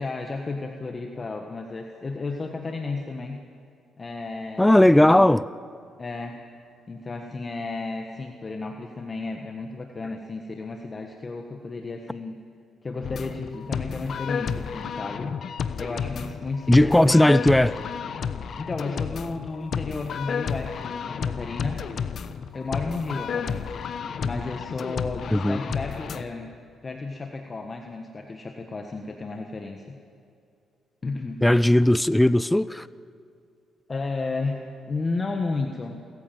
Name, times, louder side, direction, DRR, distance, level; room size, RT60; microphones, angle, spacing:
voice 1, 0.0-3.4 4.0-5.2 6.0-6.4 6.9-12.4 12.8-15.4 15.8-17.6 18.6-21.8 22.5-23.9 24.2-30.0 31.0-31.4 33.9-36.0, left 3 dB, 30° left, 1.5 m, -33 dB
voice 2, 4.6-5.5 16.7-17.7 25.3-25.6 31.4-32.9, left 1 dB, 10° left, 0.4 m, -17 dB
sound 1, 13.0-26.2, left 7 dB, 60° left, 1.0 m, -32 dB
27.5 x 14.5 x 7.6 m
cardioid pair, 90°, 0 cm